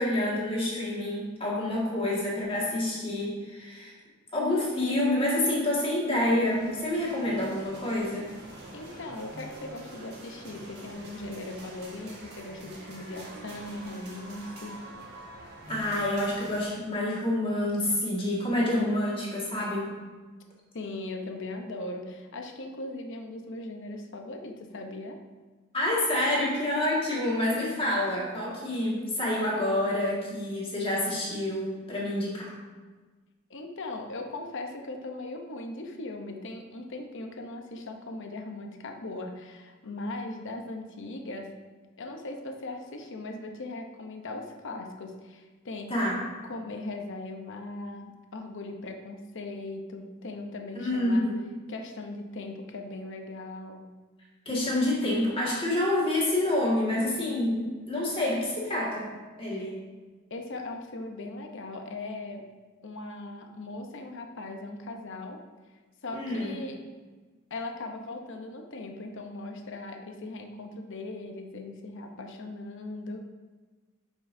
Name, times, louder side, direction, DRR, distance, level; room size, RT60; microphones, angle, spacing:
voice 1, 0.0-3.9 4.3-8.3 15.7-19.9 25.7-32.5 45.9-46.2 50.7-51.5 54.5-59.1 59.4-59.8 66.1-66.5, left 1 dB, 25° left, -5 dB, 1.9 m, -28 dB
sound 1, 6.4-16.7, right 1 dB, 55° right, 1.6 m, -45 dB
voice 2, 8.7-14.9 20.7-25.2 33.5-41.6 42.0-46.0 46.4-51.3 51.7-53.9 59.5-59.7 60.3-62.5 62.8-65.4 66.0-66.8 67.5-73.2, left 2 dB, 65° left, 4 dB, 0.8 m, -39 dB
10.5 x 5.4 x 2.7 m, 1.3 s
head